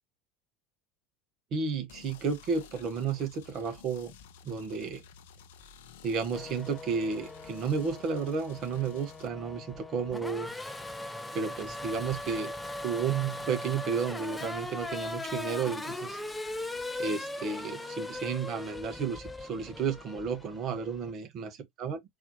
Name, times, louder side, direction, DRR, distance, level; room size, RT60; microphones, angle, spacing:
voice 1, 1.5-4.1 4.4-5.0 6.0-10.5 11.3-12.5 12.8-16.2 17.0-22.0, right 5 dB, 45° right, 1.2 m, -32 dB
sound 1, 1.9-9.3, left 6 dB, 65° left, 0.6 m, -53 dB
Race car auto racing / Accelerating revving vroom, 6.3-21.1, left 2 dB, 5° left, 0.6 m, -39 dB
4.0 x 2.8 x 2.8 m
figure-of-eight pair, 75°, 0 cm